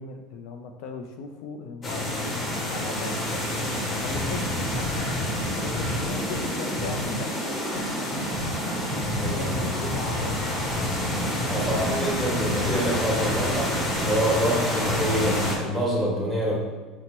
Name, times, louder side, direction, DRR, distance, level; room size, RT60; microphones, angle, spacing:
voice 1, 0.0-3.4 4.0-5.1 5.6-7.3 7.7-8.1 9.2-10.4, left 4 dB, 70° left, 4 dB, 0.3 m, -37 dB
sound 1, 1.8-15.6, left 1 dB, 25° left, 1.0 m, -28 dB
voice 2, 9.1-9.6 11.5-16.6, equal, ahead, -5 dB, 1.2 m, -26 dB
4.3 x 2.0 x 4.3 m, 1.3 s
supercardioid pair, 120°, 0 cm